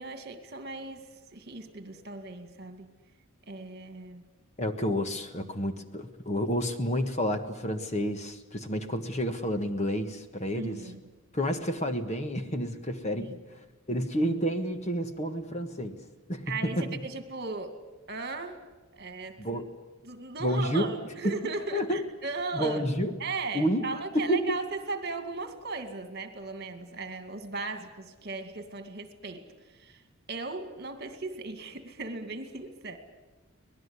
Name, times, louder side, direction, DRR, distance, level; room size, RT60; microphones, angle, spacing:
voice 1, 0.0-2.9 3.5-4.2 5.4-5.5 10.6-11.0 13.2-13.4 16.5-17.8 18.1-18.6 18.9-19.6 20.0-22.8 23.2-30.0 30.3-33.0, right 3 dB, 45° right, 8 dB, 2.3 m, -37 dB
voice 2, 4.6-10.8 11.3-13.3 13.9-16.0 16.3-17.0 19.4-19.7 20.4-20.9 21.2-21.4 21.7-22.0 22.5-23.1 23.5-23.8 24.1-24.4, equal, 30° left, 8 dB, 1.4 m, -29 dB
25.0 x 19.0 x 9.8 m, 1.2 s
head